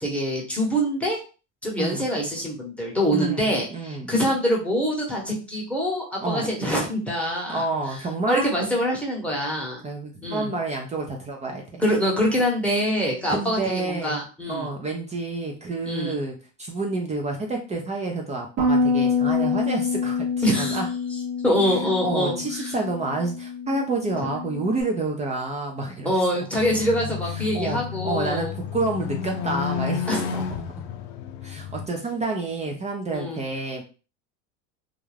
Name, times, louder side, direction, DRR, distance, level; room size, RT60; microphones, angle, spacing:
voice 1, 0.0-1.2 1.6-7.6 8.3-9.8 10.2-10.5 11.8-14.7 15.9-16.2 20.4-20.8 21.4-22.3 26.0-28.5 30.1-30.3 33.1-33.4, equal, 5° left, -3 dB, 0.9 m, -24 dB
voice 2, 3.1-4.1 6.2-6.5 7.5-8.5 9.8-11.8 13.3-14.2 14.5-20.9 21.6-26.1 27.3-30.4 31.4-33.8, right 2 dB, 20° right, 1 dB, 0.4 m, -29 dB
Bass guitar, 18.6-24.8, left 4 dB, 40° right, 0.8 m, -26 dB
sound 1, 26.5-31.9, left 8 dB, 75° left, 0.5 m, -31 dB
2.5 x 2.2 x 3.2 m, 0.35 s
supercardioid pair, 115°, 35 cm